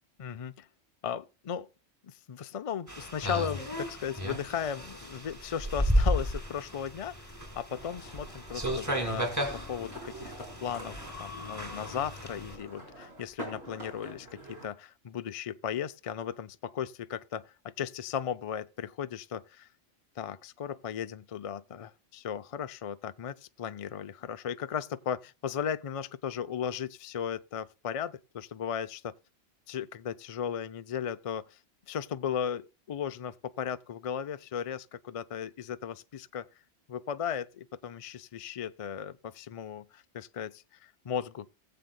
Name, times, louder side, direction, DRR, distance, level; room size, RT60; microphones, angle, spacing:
voice 1, 0.2-0.7 1.0-1.7 2.0-7.1 7.6-10.3 10.6-19.7 20.2-29.1 29.7-31.6 31.9-36.5 36.9-41.5, left 8 dB, 50° left, 0.4 m, -36 dB
sound 1, 2.9-12.6, equal, 15° right, 2.4 m, -33 dB
sound 2, 7.7-14.7, right 1 dB, 60° right, 4.3 m, -47 dB
20.0 x 7.7 x 2.2 m
omnidirectional pair, 1.2 m